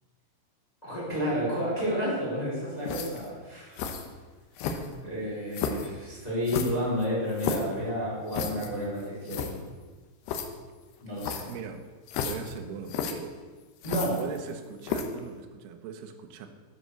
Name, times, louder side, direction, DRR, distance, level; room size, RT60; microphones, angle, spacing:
voice 1, 0.8-3.8 5.0-9.6 11.0-11.4 13.8-14.2, equal, 10° left, -7 dB, 4.0 m, -31 dB
sound 1, 2.8-3.3 3.8-4.1 4.6-5.1 5.5-5.9 6.5-7.7 8.3-8.7 9.0-9.1 9.3-9.5 10.3-10.5 11.2-11.6 12.1-12.5 12.9-13.1 13.8-14.5 14.8-15.2, left 7 dB, 75° left, 2.7 m, -32 dB
voice 2, 11.5-11.9 12.2-13.4 14.2-16.5, right 7 dB, 75° right, 6 dB, 2.6 m, -40 dB
11.0 x 7.7 x 7.0 m, 1.4 s
omnidirectional pair, 5.6 m